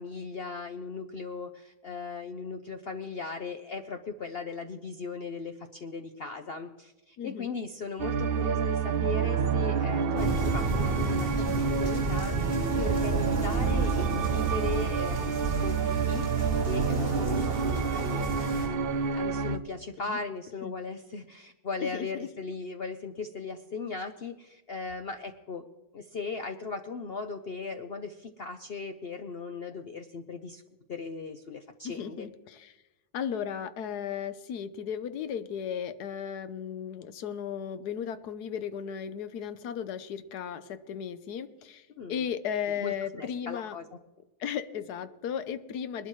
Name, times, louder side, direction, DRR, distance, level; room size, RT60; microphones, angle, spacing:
voice 1, 0.0-11.3 11.7-25.7 25.9-30.6 30.9-32.3 41.9-42.3 42.7-43.9, left 4 dB, 55° left, 6 dB, 0.7 m, -38 dB
voice 2, 7.2-7.5 20.1-20.2 20.6-20.7 21.8-22.3 31.8-32.7 33.1-43.8 44.4-46.1, left 8 dB, 80° left, 12 dB, 1.3 m, -35 dB
sound 1, 8.0-19.6, right 6 dB, 60° right, 0.6 m, -28 dB
sound 2, 10.2-18.7, right 2 dB, 15° left, 5.4 m, -32 dB
21.0 x 12.0 x 3.2 m, 1.0 s
omnidirectional pair, 1.7 m